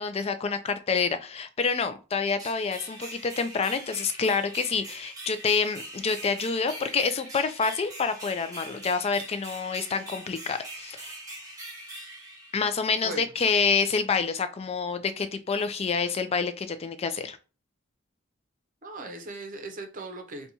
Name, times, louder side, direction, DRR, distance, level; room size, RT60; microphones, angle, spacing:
voice 1, 0.0-11.1 12.5-17.4, left 5 dB, 30° left, 0.4 m, -27 dB
sound 1, 2.4-13.1, right 1 dB, 20° right, 1.0 m, -42 dB
voice 2, 18.8-20.5, right 2 dB, 40° right, 0.6 m, -38 dB
4.0 x 2.3 x 2.8 m
head